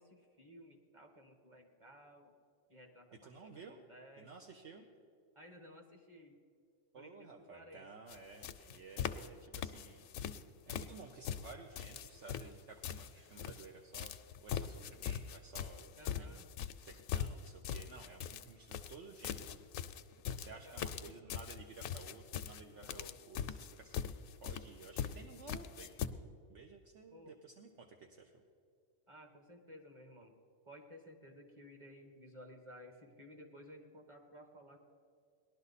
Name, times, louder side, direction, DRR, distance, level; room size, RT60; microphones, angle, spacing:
voice 1, 0.0-2.3 2.7-4.4 5.3-6.4 6.9-7.9 16.0-16.5 20.5-20.9 22.8-23.2 27.1-27.4 29.1-30.4 30.7-34.8, equal, 25° right, 3 dB, 1.4 m, -56 dB
voice 2, 3.2-3.8 4.2-4.9 6.9-10.1 10.7-14.1 14.4-16.4 16.8-20.0 20.3-24.1 24.4-25.9 26.5-28.3, right 4 dB, 65° right, 2 dB, 1.1 m, -54 dB
sound 1, 8.1-8.2 8.4-9.3 9.5-10.4 10.7-13.7 13.9-26.1, left 9 dB, 85° left, 1.0 m, -41 dB
18.5 x 11.5 x 4.1 m, 2.2 s
omnidirectional pair, 1.4 m